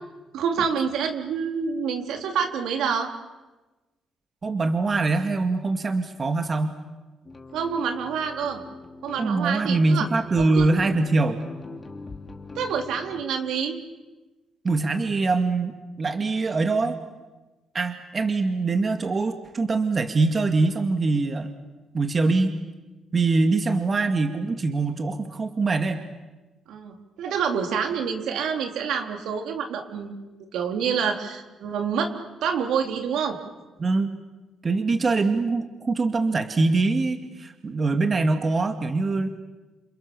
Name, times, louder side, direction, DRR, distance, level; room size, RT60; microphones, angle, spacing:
voice 1, 0.3-3.1 7.5-8.6 9.0-10.0 10.4-10.7 12.6-13.8 26.7-30.2 30.5-32.1 32.4-33.4, right 6 dB, 80° right, 4 dB, 3.8 m, -27 dB
voice 2, 4.4-6.8 9.2-11.4 14.6-17.0 17.7-21.5 21.9-22.5 23.1-26.1 33.8-34.1 34.6-39.3, right 3 dB, 35° right, 7 dB, 2.2 m, -23 dB
sound 1, 7.2-13.2, left 3 dB, 30° left, 3.2 m, -41 dB
29.5 x 27.5 x 7.1 m, 1.2 s
cardioid pair, 90°, 0 cm